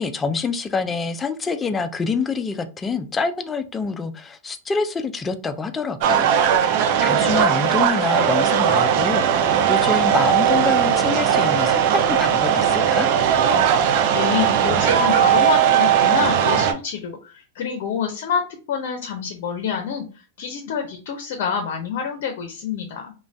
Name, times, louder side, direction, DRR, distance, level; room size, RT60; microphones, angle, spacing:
voice 1, 0.0-6.3 6.6-13.1, left 4 dB, 15° left, 8 dB, 0.4 m, -26 dB
sound 1, 6.0-16.7, right 8 dB, 55° right, 0.4 m, -18 dB
voice 2, 14.1-18.4 18.7-23.1, left 7 dB, 60° left, 4 dB, 0.6 m, -27 dB
2.5 x 2.2 x 3.2 m, 0.35 s
hypercardioid pair, 120°, 0 cm